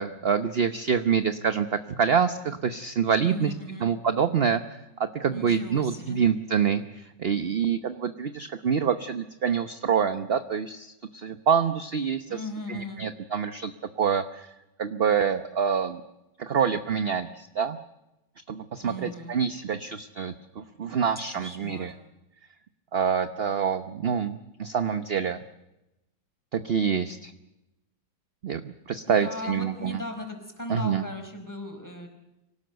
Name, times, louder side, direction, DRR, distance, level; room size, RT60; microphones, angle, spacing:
voice 1, 0.0-3.5 3.8-4.6 5.1-12.2 12.7-13.7 14.0-14.5 14.8-16.0 16.4-17.8 18.5-21.9 22.9-25.4 26.5-27.3 28.4-30.0 30.7-31.0, right 7 dB, 45° right, 10 dB, 0.9 m, -26 dB
voice 2, 3.2-3.9 5.3-6.2 12.3-13.0 18.8-19.3 21.3-21.9 29.1-32.1, left 1 dB, 10° left, 4 dB, 4.6 m, -37 dB
26.0 x 18.5 x 8.0 m, 0.93 s
omnidirectional pair, 1.9 m